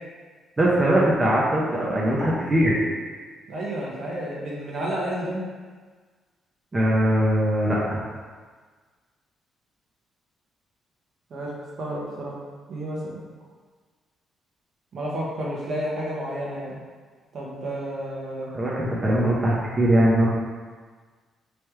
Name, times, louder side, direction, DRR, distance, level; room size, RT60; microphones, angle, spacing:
voice 1, 0.6-2.8 6.7-8.0 18.5-20.3, right 1 dB, 25° right, -6 dB, 0.7 m, -21 dB
voice 2, 3.5-5.5 11.3-12.4 12.7-13.0 14.9-16.8 17.3-18.5, right 1 dB, 60° right, -4 dB, 1.0 m, -31 dB
3.4 x 3.2 x 3.1 m, 1.5 s
cardioid pair, 90°, 0 cm